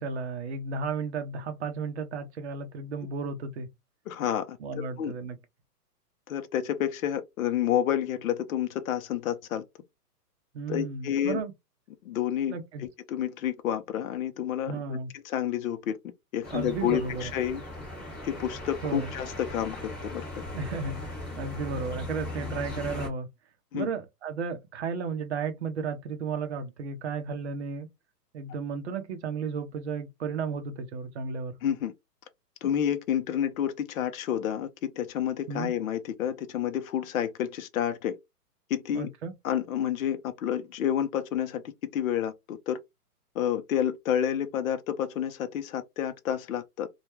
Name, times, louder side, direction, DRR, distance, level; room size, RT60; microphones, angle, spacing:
voice 1, 0.0-3.7 4.6-5.4 10.5-11.5 12.5-12.8 14.7-15.1 16.5-17.3 18.8-19.1 20.5-23.3 23.7-27.9 28.3-31.6 35.5-35.7 38.9-39.3, right 5 dB, 45° right, 0.6 m, -34 dB
voice 2, 4.1-4.6 5.0-5.1 6.3-9.6 10.7-11.4 12.0-12.5 12.8-15.0 15.2-16.0 16.3-17.6 18.2-20.4 23.7-23.9 31.6-31.9 32.6-38.2 38.7-39.1 39.4-42.8 43.3-46.9, left 10 dB, 60° left, 0.6 m, -29 dB
sound 1, 16.4-23.1, left 2 dB, 10° left, 0.5 m, -38 dB
2.3 x 2.2 x 2.9 m
hypercardioid pair, 160°, 48 cm